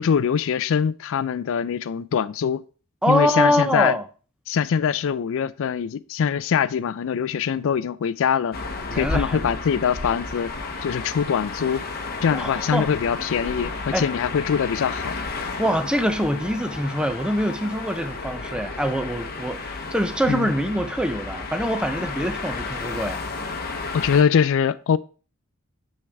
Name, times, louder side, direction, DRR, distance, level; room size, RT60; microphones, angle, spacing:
voice 1, 0.0-2.6 3.1-4.0 4.5-8.6 8.9-10.5 10.8-11.8 12.2-15.2 20.3-20.5 23.9-25.0, left 7 dB, 60° left, 0.4 m, -23 dB
voice 2, 3.0-4.0 8.9-9.5 12.3-12.9 13.9-14.1 15.6-23.2, equal, 5° right, 0.6 m, -24 dB
sound 1, 8.5-24.2, left 3 dB, 45° left, 0.9 m, -32 dB
6.5 x 6.5 x 3.4 m
head